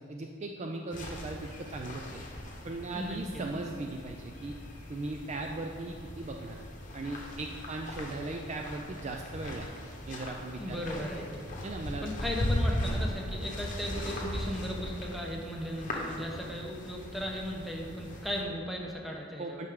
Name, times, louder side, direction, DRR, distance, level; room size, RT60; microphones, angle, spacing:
voice 1, 0.1-2.2 2.6-4.6 4.9-6.6 6.9-9.7 10.1-11.0 11.6-12.1 19.4-19.7, right 2 dB, 30° right, 2 dB, 0.3 m, -38 dB
sound 1, 0.9-18.4, left 1 dB, 40° left, 1.0 m, -38 dB
voice 2, 2.9-3.4 10.6-11.4 12.0-19.6, equal, ahead, -1 dB, 0.8 m, -37 dB
9.4 x 5.7 x 3.6 m, 2.2 s
head